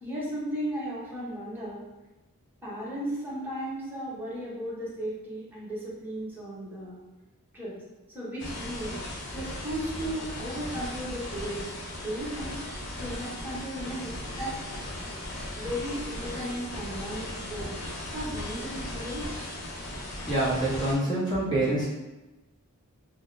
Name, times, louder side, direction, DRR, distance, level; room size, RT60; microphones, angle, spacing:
voice 1, 0.0-1.8 2.6-7.0 7.5-7.8 8.1-9.0 9.3-11.7 12.0-12.6 13.0-14.6 15.5-17.7 18.1-19.5, equal, 10° right, -9 dB, 1.0 m, -35 dB
sound 1, 8.4-21.0, left 1 dB, 60° left, 0.7 m, -37 dB
voice 2, 20.3-21.9, right 1 dB, 20° left, -9 dB, 1.1 m, -26 dB
3.6 x 2.1 x 2.6 m, 1.1 s
head